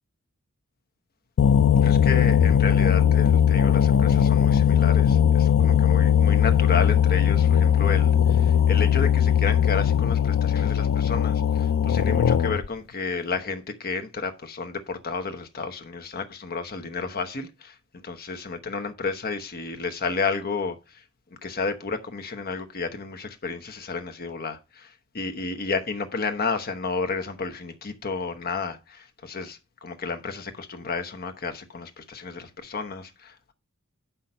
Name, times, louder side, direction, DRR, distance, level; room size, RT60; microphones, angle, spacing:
sound 1, 1.4-12.7, left 8 dB, 60° left, 0.4 m, -19 dB
voice 1, 1.8-17.8 18.0-21.0 21.4-33.5, left 4 dB, 45° left, 1.0 m, -32 dB
7.3 x 5.8 x 5.3 m
head